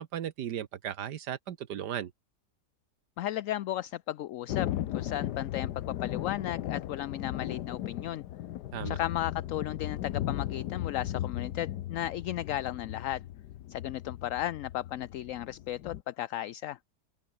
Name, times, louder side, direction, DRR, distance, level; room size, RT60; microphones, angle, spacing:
voice 1, 0.0-2.1 8.7-9.0, right 10 dB, 80° right, 1.6 m, -36 dB
voice 2, 3.2-8.2 8.8-13.2 13.7-16.8, left 13 dB, 65° left, 0.8 m, -35 dB
Thunder, 4.5-16.0, left 13 dB, 85° left, 1.4 m, -36 dB
open air
omnidirectional pair, 1.8 m